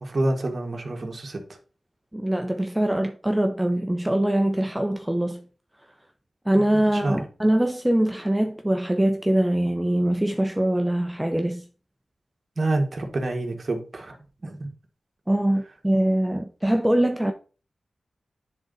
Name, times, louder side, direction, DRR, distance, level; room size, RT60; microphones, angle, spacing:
voice 1, 0.0-1.4 6.9-7.2 12.6-14.7, right 2 dB, 50° right, 1.7 m, -27 dB
voice 2, 2.1-5.4 6.5-11.7 15.3-17.3, right 1 dB, 10° right, 0.6 m, -23 dB
9.7 x 3.9 x 4.0 m
cardioid pair, 70°, 0 cm